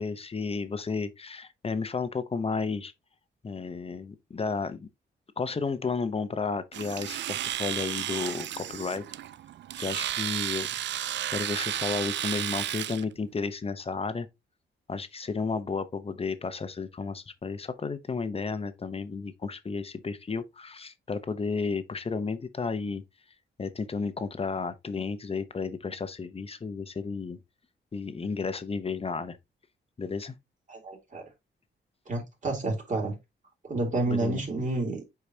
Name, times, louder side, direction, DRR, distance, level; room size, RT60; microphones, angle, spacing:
voice 1, 0.0-2.9 3.4-4.9 5.4-9.0 9.8-10.7 11.3-14.3 14.9-23.0 23.6-27.4 27.9-29.4 30.0-30.3 34.1-34.4, left 4 dB, 30° left, 0.8 m, -32 dB
Domestic sounds home sounds, 6.7-13.0, right 12 dB, 70° right, 0.4 m, -33 dB
voice 2, 30.7-31.2 32.1-33.2 33.6-35.0, right 2 dB, 40° right, 3.1 m, -30 dB
8.3 x 4.8 x 2.8 m
cardioid pair, 100°, 19 cm